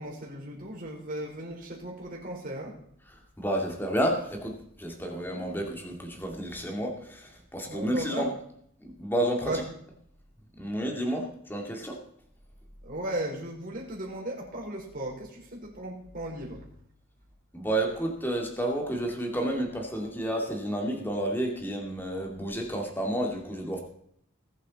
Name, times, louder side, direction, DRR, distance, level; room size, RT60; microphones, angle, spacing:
voice 1, 0.0-2.8 7.6-8.3 9.4-9.6 12.8-16.7, right 1 dB, 40° right, -1 dB, 4.5 m, -36 dB
voice 2, 3.4-8.3 8.8-9.5 10.6-12.0 17.5-23.8, right 1 dB, 10° left, 1 dB, 2.2 m, -30 dB
20.0 x 8.3 x 4.2 m, 0.68 s
head